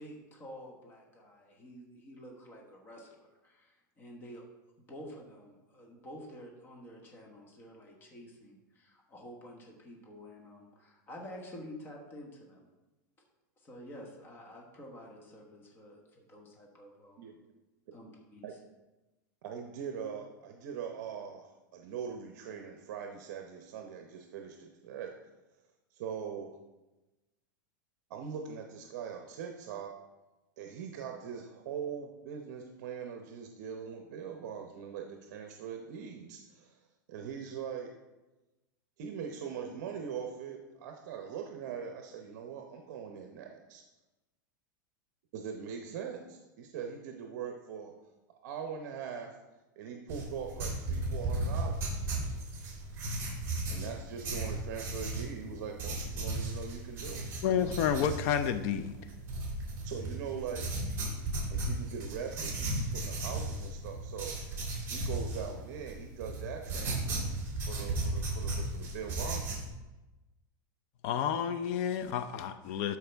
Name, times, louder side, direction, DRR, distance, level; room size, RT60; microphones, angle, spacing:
voice 1, 0.0-4.4 4.9-12.7 13.6-17.3 17.9-18.6, equal, 20° left, 1.3 m, -49 dB
voice 2, 19.4-25.1 25.9-26.5 28.1-29.9 30.6-36.8 37.1-37.9 39.0-43.8 45.3-47.9 48.4-49.4 49.8-52.0 53.7-57.3 59.8-60.7 61.5-64.4 64.9-67.2 67.6-69.6, right 7 dB, 55° right, 0.8 m, -41 dB
sound 1, 50.1-69.7, right 2 dB, 25° right, 3.0 m, -35 dB
voice 3, 57.4-59.0 71.0-73.0, left 8 dB, 45° left, 0.5 m, -30 dB
12.5 x 4.7 x 3.5 m
supercardioid pair, 155°, 11 cm